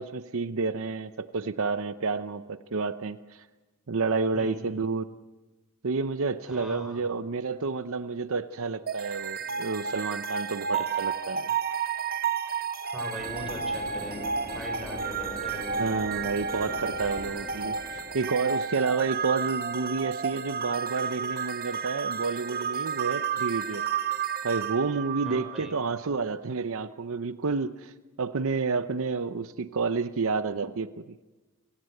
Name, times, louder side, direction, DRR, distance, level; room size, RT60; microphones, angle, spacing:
voice 1, 0.0-3.5 3.9-5.1 5.8-11.5 15.8-23.9 24.4-31.2, right 4 dB, 65° right, 12 dB, 0.7 m, -30 dB
voice 2, 4.3-4.8 6.5-7.0 10.7-10.9 12.8-14.3 14.5-15.8 25.2-25.7, equal, ahead, 3 dB, 5.4 m, -40 dB
sound 1, 8.9-26.0, right 6 dB, 45° right, 1.2 m, -32 dB
sound 2, 13.2-18.7, left 2 dB, 40° left, 2.0 m, -42 dB
29.5 x 17.5 x 7.9 m, 1.2 s
head